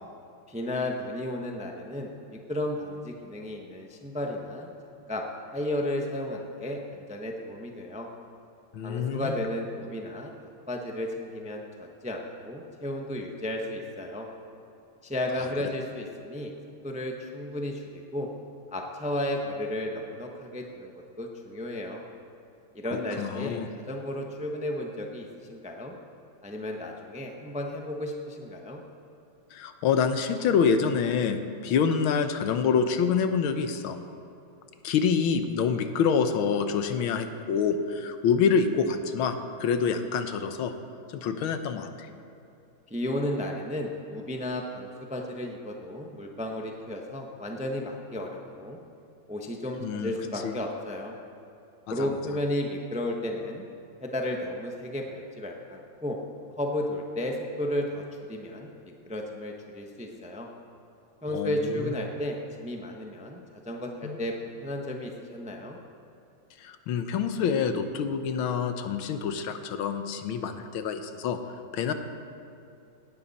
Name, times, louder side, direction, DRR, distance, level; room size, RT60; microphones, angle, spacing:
voice 1, 0.5-4.7 5.1-5.2 5.5-8.1 8.8-10.3 10.7-14.3 15.0-16.5 16.8-18.3 18.7-20.9 21.2-22.0 22.7-23.6 23.9-25.9 26.4-28.8 42.9-48.8 49.3-51.1 51.9-53.6 54.0-56.2 56.6-60.5 61.2-64.3 64.6-65.8, left 1 dB, 5° right, 1 dB, 0.7 m, -33 dB
voice 2, 8.7-9.4 22.9-23.7 29.5-34.0 34.8-40.7 41.1-42.1 49.8-50.2 50.4-50.5 51.9-52.1 61.3-62.0 64.0-64.2 66.6-71.4 71.7-71.9, left 6 dB, 90° left, 8 dB, 1.7 m, -27 dB
17.5 x 12.5 x 4.2 m, 2.7 s
omnidirectional pair, 2.2 m